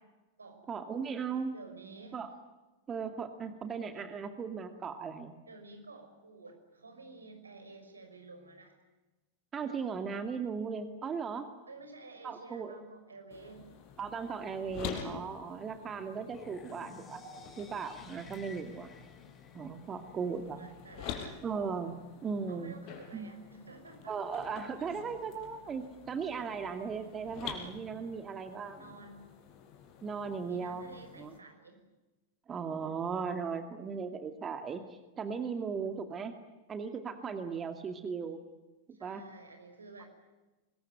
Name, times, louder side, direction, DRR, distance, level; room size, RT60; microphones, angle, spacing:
voice 1, 0.7-1.5 2.1-2.3 2.9-5.3 9.5-11.5 12.2-12.9 14.0-17.2 17.6-18.9 19.5-20.7 21.4-22.8 23.1-23.3 24.1-28.8 30.0-30.9 31.2-31.3 32.5-36.3 36.7-38.4 39.0-39.2 40.0-40.1, right 5 dB, 20° right, 7 dB, 2.2 m, -37 dB
voice 2, 1.5-2.2 5.5-8.8 11.7-13.6 20.0-21.2 22.5-24.2 28.8-29.3 30.5-31.8 38.9-40.1, right 3 dB, 75° right, 5 dB, 5.8 m, -51 dB
sound 1, 13.3-31.4, left 8 dB, 40° left, 5.0 m, -48 dB
sound 2, 16.3-20.3, left 3 dB, 20° left, 5.1 m, -52 dB
25.0 x 22.0 x 9.3 m, 1.1 s
figure-of-eight pair, 90°, 0 cm